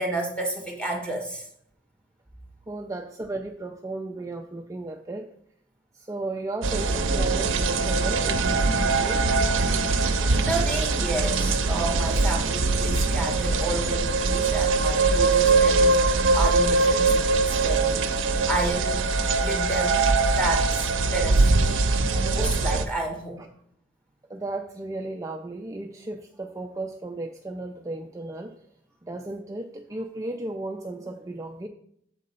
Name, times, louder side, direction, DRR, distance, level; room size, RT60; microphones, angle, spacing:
voice 1, 0.0-1.5 10.0-18.1 18.5-19.0 19.4-23.4, right 1 dB, 5° left, 0 dB, 1.4 m, -31 dB
voice 2, 2.7-5.3 5.9-9.3 23.4-23.5 24.3-28.5 29.0-31.7, right 2 dB, 15° right, 4 dB, 0.3 m, -35 dB
sound 1, 6.6-22.9, right 3 dB, 75° right, 0.6 m, -22 dB
7.5 x 3.9 x 5.3 m, 0.70 s
head